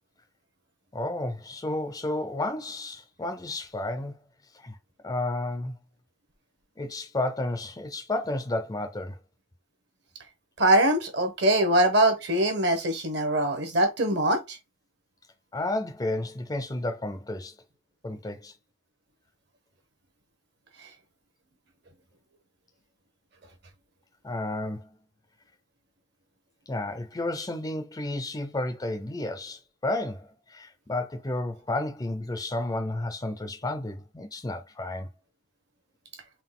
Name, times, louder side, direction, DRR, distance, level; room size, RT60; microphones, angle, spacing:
voice 1, 0.9-4.2 4.5-4.8 5.0-5.8 6.8-9.2 15.5-17.5 18.0-18.5 24.2-24.9 26.7-35.1, left 2 dB, 15° left, 0.4 m, -32 dB
voice 2, 10.6-14.6, right 1 dB, 55° right, 0.9 m, -23 dB
3.9 x 2.3 x 3.6 m
head